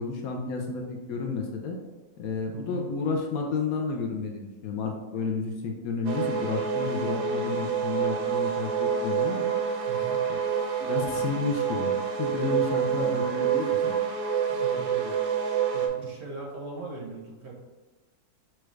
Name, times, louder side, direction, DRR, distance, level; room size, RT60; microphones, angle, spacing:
voice 1, 0.0-1.8 2.2-9.5 10.3-10.4 10.8-11.9 12.2-14.0, left 4 dB, 70° left, 2 dB, 1.0 m, -31 dB
voice 2, 2.5-2.9 9.9-10.3 14.5-15.2 15.7-17.5, right 3 dB, 55° right, -3 dB, 0.9 m, -40 dB
sound 1, 6.0-15.9, right 7 dB, 85° right, 0.4 m, -27 dB
6.1 x 2.3 x 3.1 m, 1.2 s
omnidirectional pair, 1.6 m